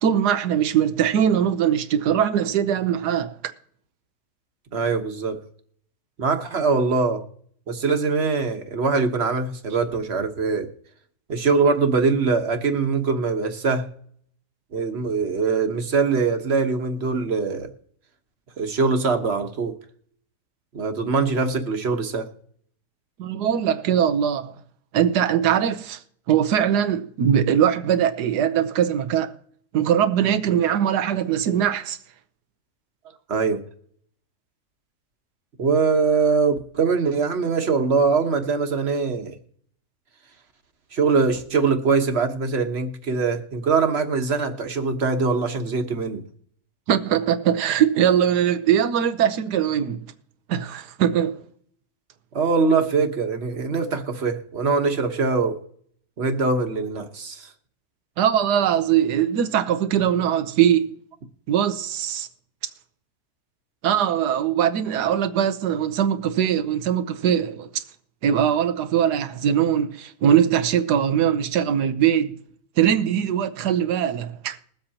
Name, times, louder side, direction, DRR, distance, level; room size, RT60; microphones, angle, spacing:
voice 1, 0.0-3.5 23.2-24.6 24.9-26.0 26.3-29.3 29.7-32.0 46.9-50.0 50.5-51.4 58.2-60.9 61.5-62.3 63.8-67.8 68.2-72.4 72.8-74.6, right 9 dB, 90° right, 1.4 m, -21 dB
voice 2, 4.7-5.4 6.2-7.2 7.7-10.7 11.3-13.9 14.7-17.7 18.6-19.8 20.7-22.3 33.3-33.6 35.6-39.4 40.9-46.2 52.3-55.6 56.2-57.5, right 4 dB, 45° right, 1.3 m, -22 dB
21.5 x 7.8 x 2.8 m
omnidirectional pair, 1.7 m